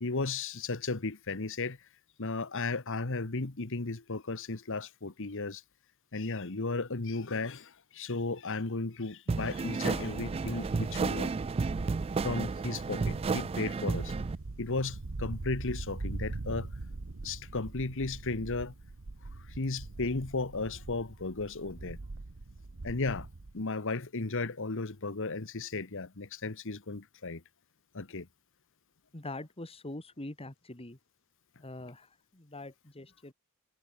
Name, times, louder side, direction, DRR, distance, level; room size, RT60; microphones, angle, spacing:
voice 1, 0.0-1.8 2.2-5.6 6.1-11.3 12.2-14.1 14.6-16.7 17.2-18.7 19.6-22.0 22.8-23.3 23.5-27.4 27.9-28.3, left 3 dB, 65° left, 1.4 m, -35 dB
sound 1, 9.3-14.4, right 4 dB, 25° right, 0.3 m, -32 dB
sound 2, 9.9-23.6, right 2 dB, 70° right, 1.0 m, -42 dB
voice 2, 29.1-31.0 31.6-33.3, left 2 dB, 25° left, 2.2 m, -44 dB
head